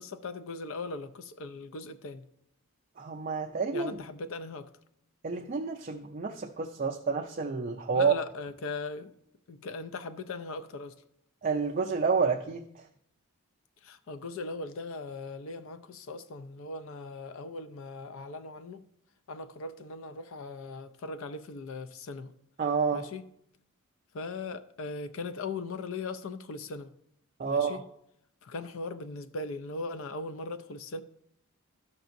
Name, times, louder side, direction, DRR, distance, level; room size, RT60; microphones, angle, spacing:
voice 1, 0.0-2.2 3.7-4.7 7.9-9.1 9.5-11.0 13.8-18.8 19.3-22.3 22.9-23.3 24.1-26.9 27.4-27.8 28.4-31.0, left 3 dB, 60° left, 0.4 m, -39 dB
voice 2, 3.0-3.9 5.2-8.1 11.4-12.6 22.6-23.1 27.4-27.8, right 5 dB, 35° right, 0.4 m, -29 dB
13.0 x 5.9 x 2.6 m
head